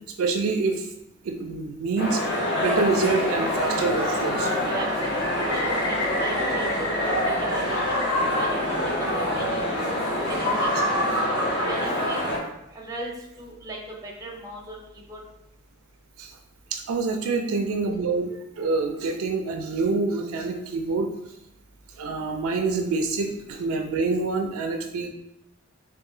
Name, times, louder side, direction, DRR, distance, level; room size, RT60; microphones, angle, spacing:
voice 1, 0.2-0.9 1.2-2.2 2.5-4.5 16.2-16.3 16.7-21.1 22.0-25.1, right 3 dB, 75° right, 4 dB, 0.4 m, -26 dB
sound 1, 2.0-12.4, left 1 dB, 55° left, 0.9 m, -25 dB
Bird, 3.5-4.1 4.3-8.0 8.4-9.2, left 1 dB, 85° left, 0.9 m, -34 dB
voice 2, 4.7-8.0 8.3-10.0 10.3-10.7 11.7-12.2 12.7-13.1 13.4-14.8 15.1-15.2, right 1 dB, 15° right, -1 dB, 0.6 m, -37 dB
3.7 x 2.5 x 2.3 m, 0.82 s
head